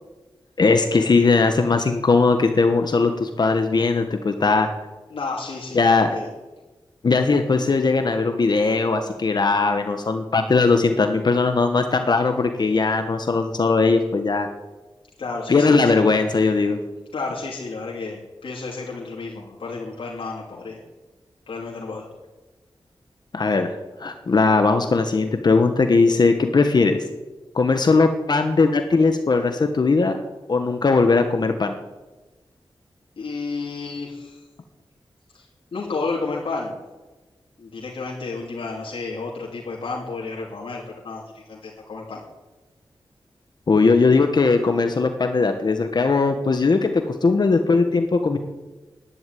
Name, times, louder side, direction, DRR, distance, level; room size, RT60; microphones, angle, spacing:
voice 1, 0.6-4.7 5.7-6.1 7.0-14.5 15.5-16.8 23.3-23.7 24.0-27.0 27.5-30.2 30.5-31.7 43.7-48.4, left 4 dB, 55° left, 6 dB, 1.3 m, -19 dB
voice 2, 5.1-6.3 15.2-16.2 17.1-20.8 21.5-22.0 33.2-34.4 35.3-35.4 35.7-36.8 37.6-42.2, left 3 dB, 85° left, -3 dB, 3.0 m, -31 dB
11.5 x 11.0 x 9.4 m, 1.2 s
wide cardioid pair, 105°, 9 cm